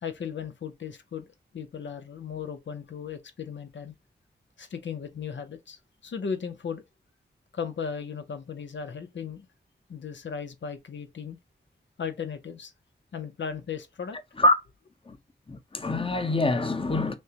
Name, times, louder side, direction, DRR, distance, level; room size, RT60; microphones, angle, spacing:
voice 1, 0.0-3.9 4.6-6.8 7.5-9.5 9.9-11.4 12.0-12.7 13.1-14.2, left 6 dB, 80° left, 0.7 m, -36 dB
voice 2, 15.5-17.1, left 2 dB, 30° left, 0.8 m, -24 dB
6.3 x 2.1 x 2.8 m
cardioid pair, 55°, 19 cm